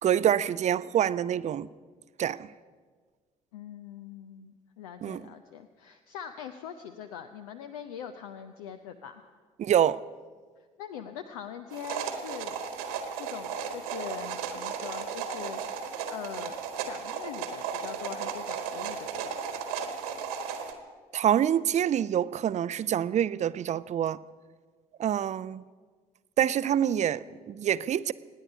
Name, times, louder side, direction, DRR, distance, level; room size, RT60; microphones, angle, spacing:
voice 1, 0.0-1.7 2.2-2.5 5.0-5.2 9.6-10.0 21.1-24.2 25.0-25.6 26.4-28.1, right 10 dB, 40° right, 17 dB, 0.5 m, -26 dB
voice 2, 3.5-9.3 10.8-16.5 16.8-19.6, left 8 dB, 70° left, 8 dB, 0.7 m, -42 dB
sound 1, 11.7-20.7, right 6 dB, 70° right, 1.5 m, -35 dB
26.5 x 10.0 x 5.4 m, 1.5 s
figure-of-eight pair, 50°, 19 cm